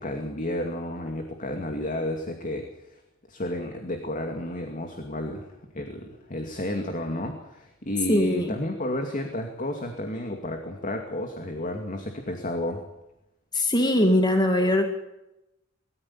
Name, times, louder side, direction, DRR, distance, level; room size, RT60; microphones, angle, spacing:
voice 1, 0.0-3.0 3.3-5.5 5.7-12.8, left 1 dB, 40° left, 4 dB, 2.4 m, -31 dB
voice 2, 8.1-8.5 13.5-14.9, left 1 dB, 20° left, 4 dB, 2.0 m, -21 dB
21.5 x 14.0 x 8.7 m, 0.92 s
head